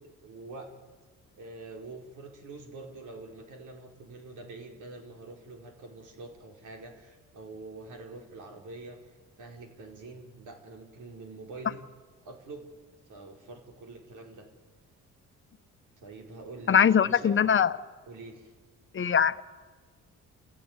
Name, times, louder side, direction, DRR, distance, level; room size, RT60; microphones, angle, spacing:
voice 1, 0.2-0.7 1.4-11.8 12.2-12.6 13.1-14.5 16.0-17.5 18.1-18.5, right 3 dB, 80° right, 3 dB, 4.8 m, -45 dB
voice 2, 16.7-17.7 18.9-19.5, left 7 dB, 40° left, 12 dB, 1.1 m, -22 dB
29.5 x 16.0 x 9.7 m, 1.4 s
cardioid pair, 90°, 30 cm